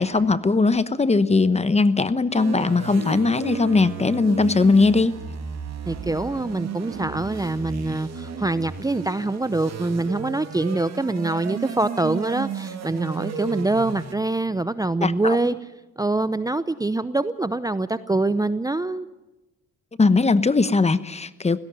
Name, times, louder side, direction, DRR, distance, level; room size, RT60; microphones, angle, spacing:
voice 1, 0.0-5.2 15.0-15.4 20.0-21.6, left 3 dB, 20° left, 14 dB, 1.0 m, -19 dB
sound 1, 2.3-14.1, right 7 dB, 60° right, 2.7 m, -34 dB
voice 2, 5.9-15.6 16.0-19.1, right 2 dB, 10° right, 14 dB, 0.7 m, -24 dB
17.5 x 17.0 x 9.3 m, 1.0 s
cardioid pair, 90°, 30 cm